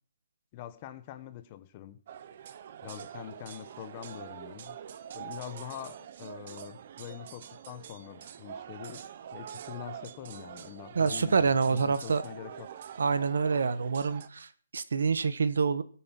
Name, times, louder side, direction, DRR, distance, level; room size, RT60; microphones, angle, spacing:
voice 1, 0.5-2.0 2.8-4.8 5.1-9.0 9.3-12.7, left 11 dB, 25° left, 12 dB, 1.0 m, -44 dB
sound 1, 2.1-14.3, right 9 dB, 40° right, 0.8 m, -45 dB
voice 2, 10.9-12.2 13.0-15.8, right 5 dB, 75° right, 14 dB, 1.3 m, -27 dB
17.5 x 9.1 x 6.0 m, 0.44 s
hypercardioid pair, 170°, 0 cm